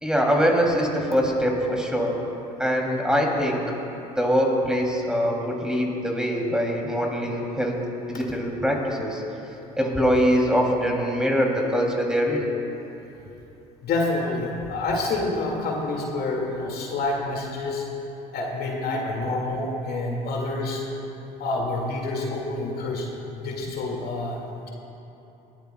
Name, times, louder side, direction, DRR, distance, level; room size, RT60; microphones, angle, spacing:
voice 1, 0.0-2.1 2.6-3.6 4.2-7.8 8.1-9.2 9.8-12.5, equal, 5° right, -1 dB, 2.7 m, -23 dB
voice 2, 13.8-17.8 18.3-20.8 21.4-23.1 23.3-24.4, left 2 dB, 50° left, -1 dB, 2.1 m, -27 dB
20.0 x 14.5 x 2.3 m, 2.9 s
hypercardioid pair, 60°, 20 cm